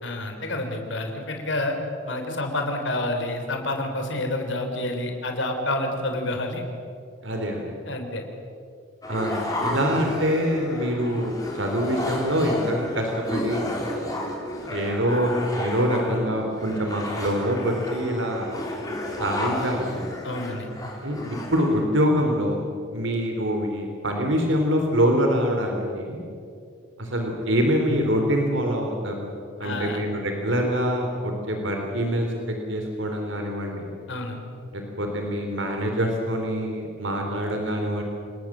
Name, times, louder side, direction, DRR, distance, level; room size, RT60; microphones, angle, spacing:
voice 1, 0.0-1.8 2.1-6.6 7.9-8.2 20.2-20.7 29.6-30.0 34.1-34.4, left 1 dB, 70° left, 4 dB, 3.7 m, -28 dB
voice 2, 7.2-7.7 9.1-13.6 14.7-18.5 19.2-20.0 21.0-21.2 21.5-22.6 22.9-26.2 27.0-29.3 29.6-33.9 34.7-38.0, equal, 75° right, 2 dB, 3.3 m, -25 dB
sound 1, 9.0-21.8, left 1 dB, 20° left, 4.0 m, -32 dB
27.5 x 19.5 x 7.4 m, 2.4 s
head